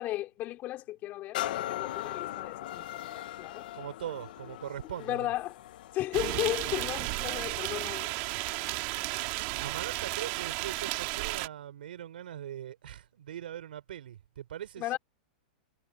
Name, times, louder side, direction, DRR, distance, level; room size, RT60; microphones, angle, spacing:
voice 1, 0.0-3.7 5.0-5.6 5.9-8.1 14.8-15.0, left 15 dB, 35° left, 5.2 m, -35 dB
sound 1, 1.3-8.9 9.5-9.6, left 14 dB, 65° left, 1.4 m, -40 dB
voice 2, 3.7-5.3 9.6-15.0, right 11 dB, 85° right, 4.2 m, -41 dB
sound 2, 6.1-11.5, right 25 dB, 45° right, 2.2 m, -33 dB
supercardioid pair, 145°, 5 cm